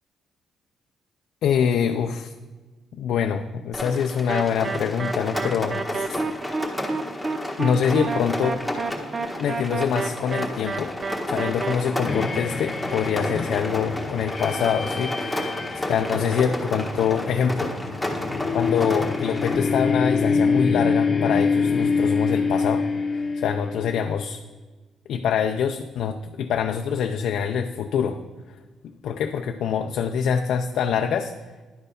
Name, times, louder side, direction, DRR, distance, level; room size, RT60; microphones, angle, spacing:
voice 1, 1.4-2.3 2.9-6.2 7.6-8.5 9.4-10.9 11.3-18.1 18.5-22.9 23.1-24.4 25.1-28.2 29.0-31.3, left 7 dB, 75° left, 6 dB, 0.4 m, -25 dB
Rain, 3.7-19.6, left 1 dB, 5° left, 1.4 m, -31 dB
sound 1, 4.3-11.7, right 4 dB, 35° right, 0.6 m, -29 dB
sound 2, 12.1-24.1, left 4 dB, 40° left, 0.8 m, -26 dB
11.0 x 4.5 x 5.0 m, 1.3 s
cardioid pair, 90°, 0 cm